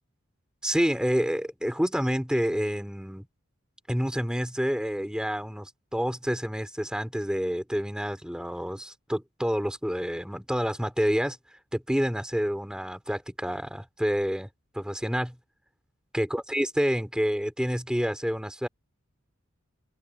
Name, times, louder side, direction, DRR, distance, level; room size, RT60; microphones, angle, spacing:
voice 1, 0.6-3.2 3.9-11.4 11.7-14.5 14.7-15.4 16.1-18.7, equal, 5° right, 3.6 m, -28 dB
open air
head